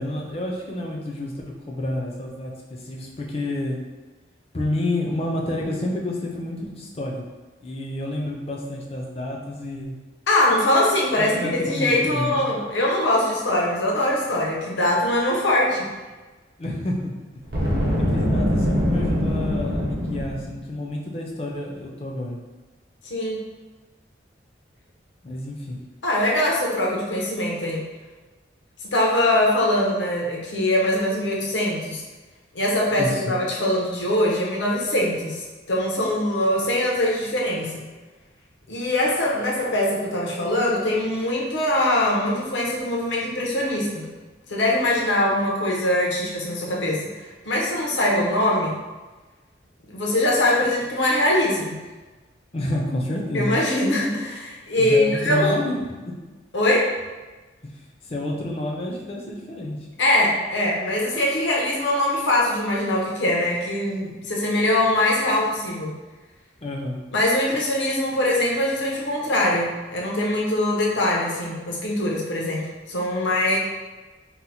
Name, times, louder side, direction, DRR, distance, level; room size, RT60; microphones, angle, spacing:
voice 1, 0.0-3.8 4.5-7.3 7.6-10.0 11.2-12.5 16.6-17.2 18.0-22.4 25.2-25.9 33.0-33.2 52.5-53.6 54.8-55.8 56.1-56.2 57.6-57.7 58.0-59.8 66.6-67.0, left 1 dB, 30° left, 0 dB, 0.4 m, -29 dB
voice 2, 10.3-15.9 23.1-23.4 26.0-27.8 28.8-32.0 32.5-37.8 38.7-44.1 44.5-48.8 49.9-51.8 53.3-55.6 56.5-56.8 60.0-65.9 67.1-73.6, left 1 dB, 75° left, -3 dB, 0.7 m, -22 dB
Boom, 17.4-20.6, equal, 55° right, 0.7 m, -23 dB
2.8 x 2.0 x 4.0 m, 1.2 s
head